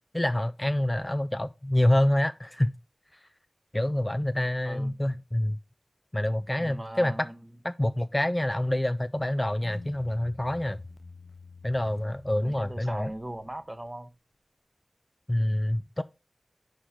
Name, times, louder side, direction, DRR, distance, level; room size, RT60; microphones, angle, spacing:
voice 1, 0.1-2.7 3.7-5.6 6.1-7.1 7.6-10.8 11.6-13.1 15.3-16.0, left 1 dB, 20° left, 0.4 m, -27 dB
voice 2, 4.6-5.0 6.6-7.5 12.4-14.1, right 1 dB, 25° right, 0.8 m, -39 dB
sound 1, 9.6-13.9, left 3 dB, 90° left, 0.5 m, -48 dB
6.4 x 4.5 x 4.8 m
wide cardioid pair, 70°, 0 cm